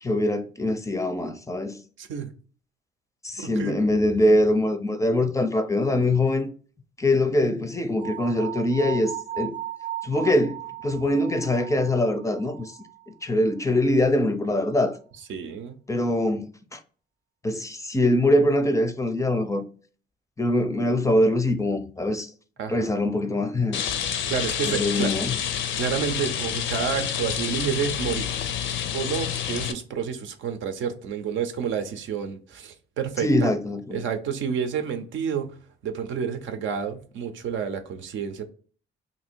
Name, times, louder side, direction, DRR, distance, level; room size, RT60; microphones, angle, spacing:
voice 1, 0.0-1.8 3.2-6.5 7.0-9.5 10.0-12.7 13.2-15.0 15.9-16.8 17.4-19.6 20.4-22.3 22.7-23.8 24.7-25.3 33.2-34.0, left 1 dB, 15° left, 0.4 m, -23 dB
voice 2, 2.0-2.3 3.4-3.8 15.3-15.8 22.6-22.9 24.3-25.1 25.8-28.3 28.9-33.5 33.9-35.5 35.8-38.5, right 7 dB, 75° right, 0.6 m, -29 dB
sound 1, 8.0-13.1, right 13 dB, 25° right, 0.6 m, -37 dB
Rain, 23.7-29.7, left 9 dB, 75° left, 0.5 m, -28 dB
2.8 x 2.6 x 4.3 m
cardioid pair, 90°, 20 cm